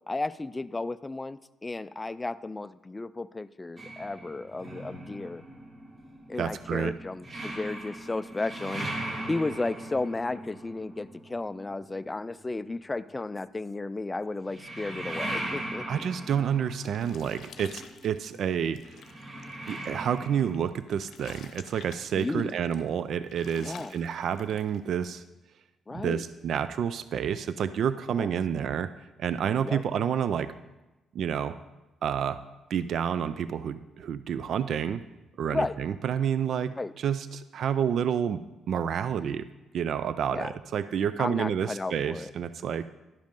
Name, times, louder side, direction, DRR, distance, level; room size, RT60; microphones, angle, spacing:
voice 1, 0.1-5.4 6.3-8.9 9.3-16.1 22.1-22.6 23.6-23.9 25.9-26.2 28.1-28.3 29.6-29.8 35.5-35.8 36.8-36.9 40.3-40.5 41.2-42.3, left 2 dB, 20° left, 14 dB, 0.3 m, -34 dB
sound 1, 3.8-12.2 14.4-20.5, right 1 dB, 40° right, 1.6 m, -39 dB
voice 2, 6.4-6.9 15.9-19.0 19.7-25.2 25.9-28.9 29.2-30.5 31.1-31.6 32.0-32.4 32.7-35.0 35.4-38.4 38.7-39.5 39.7-42.8, right 8 dB, 65° right, 13 dB, 0.3 m, -29 dB
sound 2, 16.3-25.2, left 7 dB, 70° left, 0.7 m, -51 dB
11.5 x 5.2 x 5.3 m, 1.0 s
cardioid pair, 90°, 0 cm